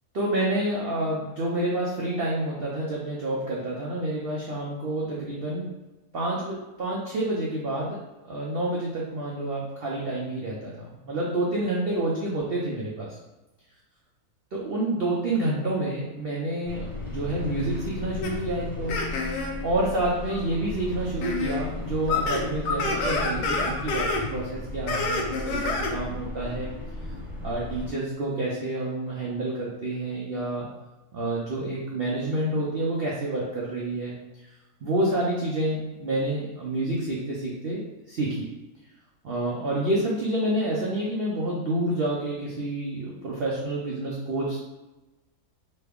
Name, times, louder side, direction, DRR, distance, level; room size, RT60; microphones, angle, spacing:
voice 1, 0.1-5.7 6.1-8.0 8.2-13.2 14.5-19.0 19.6-26.7 27.4-30.7 31.1-34.1 34.4-34.5 34.8-38.5 39.2-44.6, right 1 dB, 80° right, -4 dB, 0.5 m, -28 dB
sound 1, 16.6-27.9, left 2 dB, ahead, 0.7 m, -36 dB
sound 2, 18.2-18.3 18.9-19.5 20.3-20.4 21.2-21.6 21.8-24.2 24.9-25.9, left 3 dB, 85° left, 1.1 m, -27 dB
3.2 x 2.2 x 3.4 m, 1.1 s
omnidirectional pair, 1.6 m